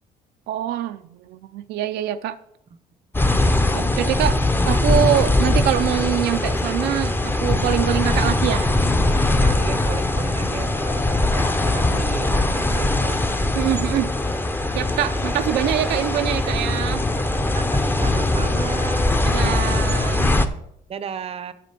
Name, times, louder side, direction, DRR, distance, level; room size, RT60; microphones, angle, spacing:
voice 1, 0.5-2.4 3.7-4.4 4.6-8.7 13.6-14.1 14.7-17.1 19.2-20.3, right 12 dB, 75° right, 0.5 m, -24 dB
sound 1, 3.1-20.5, left 2 dB, 10° left, 0.7 m, -21 dB
voice 2, 9.4-11.5 11.7-13.2 15.3-15.4 17.5-19.1 20.9-21.5, right 7 dB, 35° right, 0.6 m, -34 dB
8.4 x 6.0 x 5.8 m
cardioid pair, 110°, 17 cm